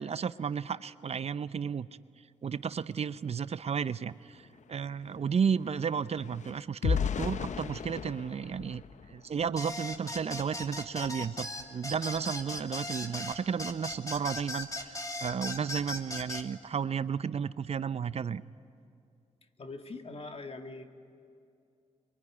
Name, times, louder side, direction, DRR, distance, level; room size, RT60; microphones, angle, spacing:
voice 1, 0.0-1.9 2.4-8.8 9.1-18.4, right 6 dB, 50° right, 15 dB, 0.6 m, -33 dB
sound 1, 3.9-4.0 4.2-9.7 10.2-10.5 10.8-11.0, left 6 dB, 65° left, 0.8 m, -36 dB
sound 2, 9.6-16.5, left 1 dB, 25° left, 2.7 m, -38 dB
voice 2, 19.6-20.8, left 3 dB, 50° left, 5 dB, 2.3 m, -42 dB
24.5 x 23.0 x 9.8 m, 2.4 s
cardioid pair, 60°, 13 cm